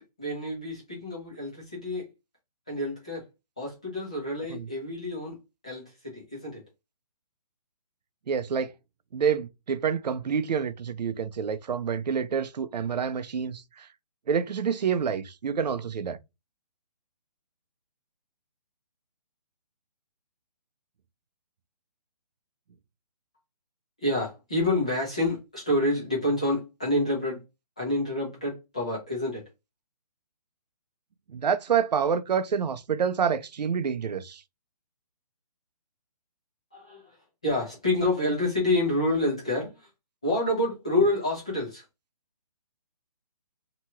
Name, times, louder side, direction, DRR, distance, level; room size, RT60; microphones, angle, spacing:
voice 1, 0.2-2.1 2.7-3.2 3.6-5.4 5.6-6.6 24.0-27.4 27.8-29.4 36.7-37.2 37.4-39.8 40.2-41.8, left 1 dB, 10° left, 0.4 m, -28 dB
voice 2, 8.3-8.7 9.1-13.9 14.3-16.2 31.3-34.4, right 7 dB, 90° right, 0.5 m, -27 dB
2.8 x 2.3 x 2.8 m
hypercardioid pair, 175°, 21 cm